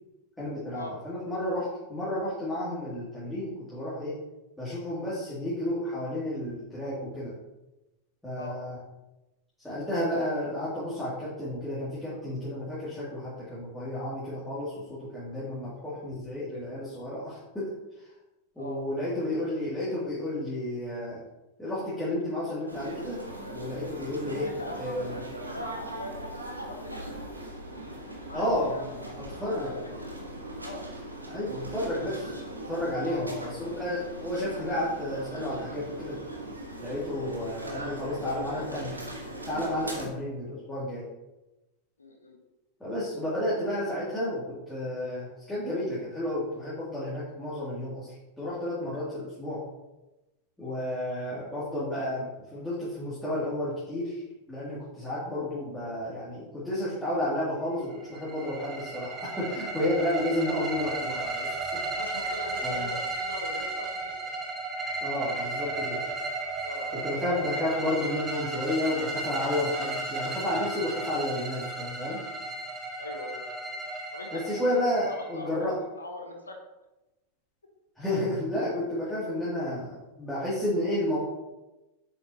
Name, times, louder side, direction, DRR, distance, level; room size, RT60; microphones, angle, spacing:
voice 1, 0.4-4.2 4.6-7.3 8.2-8.8 9.6-17.7 18.0-18.1 18.6-21.2 21.6-23.2 23.5-25.2 28.3-28.7 29.4-29.7 31.3-32.3 32.7-36.2 36.8-39.0 39.5-41.1 42.8-49.6 50.6-54.2 54.5-61.8 62.6-62.9 65.0-66.0 67.0-72.2 74.3-75.7 78.0-81.2, left 1 dB, 5° left, -10 dB, 2.3 m, -31 dB
sound 1, 22.7-40.1, right 1 dB, 85° right, 1.2 m, -40 dB
voice 2, 24.3-25.0 25.4-27.1 28.1-28.4 28.7-30.1 30.6-30.9 33.0-33.4 37.8-38.7 39.9-40.1 42.0-42.4 61.8-64.3 66.6-67.0 73.0-73.5 74.1-76.6, left 1 dB, 80° left, 3 dB, 1.1 m, -41 dB
sound 2, 57.9-75.7, right 2 dB, 15° right, 1.5 m, -34 dB
7.7 x 6.6 x 2.7 m, 1.0 s
figure-of-eight pair, 90°, 0 cm